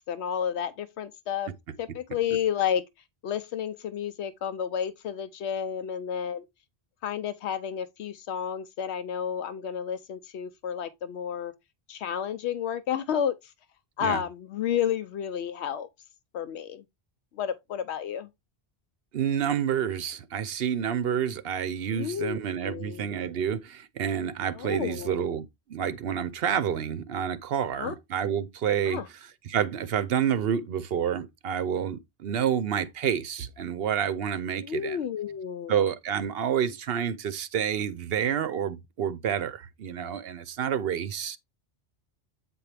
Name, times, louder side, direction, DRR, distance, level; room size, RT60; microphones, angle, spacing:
voice 1, 0.1-1.5 1.8-2.8 3.2-6.4 7.0-11.5 11.9-13.3 14.0-15.9 16.3-16.8 17.4-18.3 21.9-22.4 22.6-23.1 24.6-25.2 27.8-27.9 28.9-29.1 34.6-35.8, left 8 dB, 85° left, 0.9 m, -31 dB
voice 2, 19.1-29.0 29.5-35.0 35.7-41.4, right 8 dB, 65° right, 0.9 m, -29 dB
8.5 x 4.4 x 3.3 m
omnidirectional pair, 1.1 m